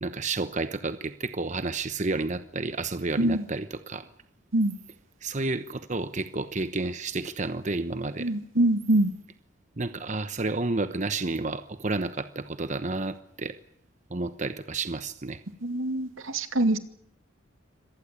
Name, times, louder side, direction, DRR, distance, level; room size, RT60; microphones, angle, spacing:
voice 1, 0.0-4.1 5.2-8.3 9.8-13.6 14.1-15.4, right 3 dB, 35° right, 11 dB, 1.0 m, -31 dB
voice 2, 8.2-9.1 15.6-16.8, right 1 dB, 85° right, 9 dB, 2.5 m, -24 dB
25.5 x 19.0 x 8.4 m, 0.70 s
head